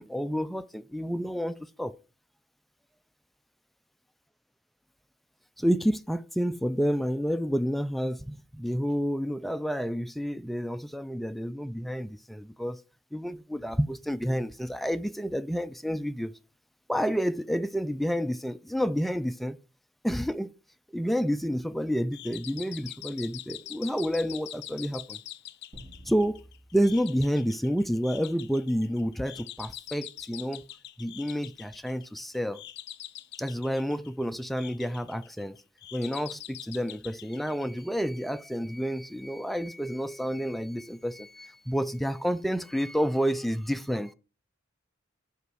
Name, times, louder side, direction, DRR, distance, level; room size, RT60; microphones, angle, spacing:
voice 1, 0.0-1.9 5.6-12.8 13.1-16.3 16.9-19.6 20.0-20.5 20.9-25.2 26.1-26.4 26.7-30.6 31.0-32.6 33.4-35.6 35.9-44.1, equal, ahead, 0.3 m, -29 dB
sound 1, 22.1-38.2, left 12 dB, 55° left, 0.5 m, -45 dB
sound 2, 25.7-28.3, equal, 60° right, 3.4 m, -52 dB
5.6 x 5.0 x 6.1 m
head